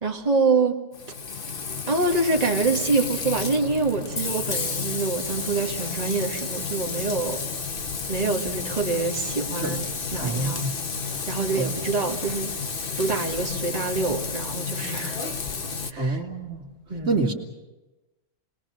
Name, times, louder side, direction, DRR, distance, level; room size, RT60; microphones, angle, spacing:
voice 1, 0.0-0.8 1.9-7.4 8.1-9.8 10.1-10.6 11.3-12.5 13.0-15.2 15.9-16.2 16.9-17.3, right 3 dB, 25° right, 2 dB, 1.7 m, -26 dB
Frying (food), 0.9-15.9, left 5 dB, 40° left, 1.2 m, -31 dB
voice 2, 10.2-10.7 11.6-11.8 16.0-16.7 17.1-17.3, right 2 dB, 50° right, -5 dB, 2.5 m, -27 dB
29.5 x 21.0 x 6.3 m, 1.1 s
omnidirectional pair, 1.6 m